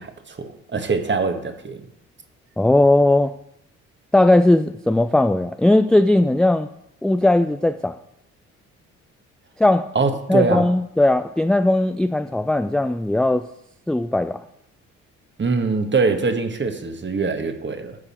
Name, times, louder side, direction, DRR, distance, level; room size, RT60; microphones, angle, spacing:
voice 1, 0.0-1.8 9.9-10.7 15.4-18.0, right 4 dB, 30° right, 1.4 m, -23 dB
voice 2, 2.6-3.3 4.1-6.7 7.0-8.0 9.6-9.9 10.3-13.5 13.9-14.4, left 1 dB, ahead, 0.3 m, -18 dB
9.9 x 6.8 x 4.3 m
hypercardioid pair, 50°, 37 cm